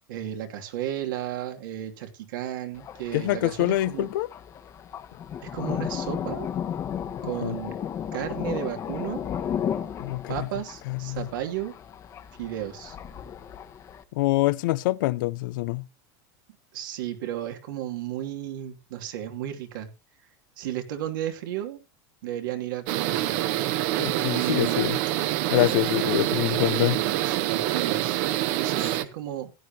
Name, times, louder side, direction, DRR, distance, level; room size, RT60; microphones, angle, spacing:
voice 1, 0.1-4.1 5.4-6.6 7.2-7.8 8.1-9.2 10.3-11.8 12.4-13.0 16.7-19.9 20.6-21.8 22.2-23.4 24.3-24.8 26.7-28.2 28.5-29.5, right 11 dB, 85° right, 2.6 m, -33 dB
Thunder, 2.7-14.0, left 9 dB, 30° left, 1.1 m, -34 dB
voice 2, 3.1-4.3 7.4-7.6 10.0-10.5 10.9-11.3 14.2-15.9 24.0-25.0 25.5-27.0, left 18 dB, 80° left, 0.6 m, -25 dB
sound 1, 22.9-29.0, right 14 dB, 60° right, 1.1 m, -26 dB
16.0 x 10.5 x 2.8 m
supercardioid pair, 145°, 11 cm